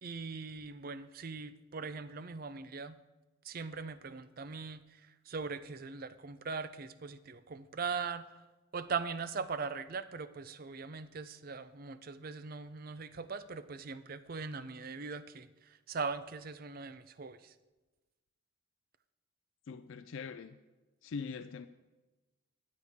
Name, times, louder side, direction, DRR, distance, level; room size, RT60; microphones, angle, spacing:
voice 1, 0.0-3.0 3.4-8.4 8.7-17.5, right 5 dB, 45° right, 13 dB, 0.4 m, -40 dB
voice 2, 19.7-20.6 21.0-21.7, left 5 dB, 65° left, 9 dB, 0.4 m, -42 dB
13.5 x 8.5 x 3.6 m, 1.2 s
head